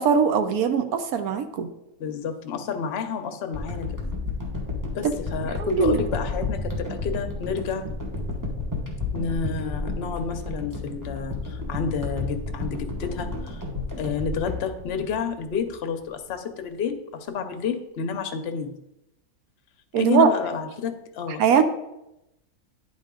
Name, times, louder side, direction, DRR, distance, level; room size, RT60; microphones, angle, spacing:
voice 1, 0.0-1.7 5.0-5.1 5.6-6.0 19.9-20.3 21.4-21.6, right 7 dB, 75° right, 9 dB, 1.1 m, -21 dB
voice 2, 2.0-4.2 4.9-7.9 9.1-13.6 14.0-18.8 20.0-21.6, left 6 dB, 55° left, 6 dB, 0.8 m, -30 dB
sound 1, 3.5-15.8 16.3-16.4, left 2 dB, 15° right, 0.9 m, -32 dB
9.9 x 4.2 x 3.7 m, 0.87 s
omnidirectional pair, 1.6 m